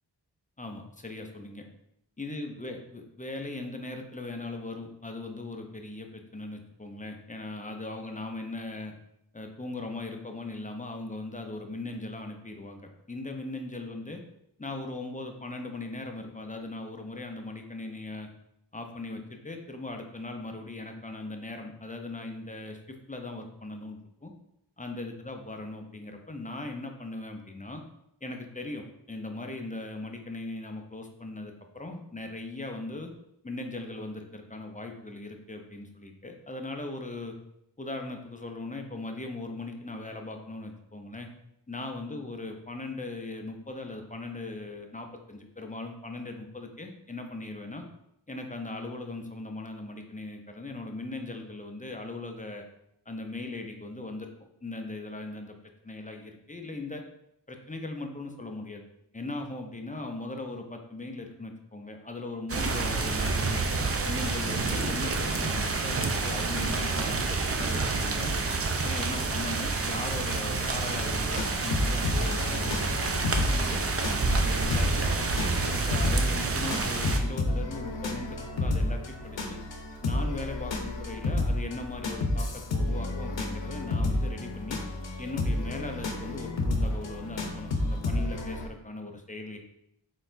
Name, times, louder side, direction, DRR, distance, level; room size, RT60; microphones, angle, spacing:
voice 1, 0.6-1.6 2.2-8.9 9.3-14.2 14.6-18.3 18.7-24.3 24.8-27.8 28.2-33.1 33.4-37.4 37.8-41.3 41.7-47.8 48.3-52.6 53.1-54.3 54.6-55.5 55.8-57.0 57.5-58.8 59.1-63.7 64.0-67.2 67.5-68.3 68.8-72.7 73.2-73.8 74.3-79.6 80.0-84.8 85.2-89.6, left 2 dB, 20° left, 4 dB, 0.5 m, -39 dB
sound 1, 62.5-77.2, right 3 dB, 35° right, 0.5 m, -28 dB
sound 2, 71.3-88.7, left 2 dB, 80° left, 0.7 m, -31 dB
4.0 x 4.0 x 2.6 m, 0.79 s
wide cardioid pair, 50°, 44 cm